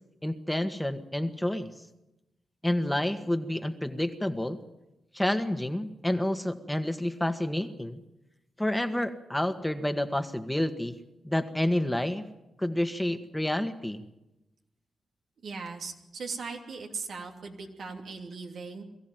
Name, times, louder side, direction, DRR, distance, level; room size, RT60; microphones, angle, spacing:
voice 1, 0.2-1.7 2.6-4.6 5.1-8.0 8.6-11.0 11.2-12.3 12.6-14.0, left 1 dB, 10° left, 8 dB, 1.8 m, -29 dB
voice 2, 15.4-18.8, right 4 dB, 70° right, 2 dB, 2.9 m, -39 dB
22.5 x 14.5 x 9.3 m, 0.95 s
supercardioid pair, 45°, 0 cm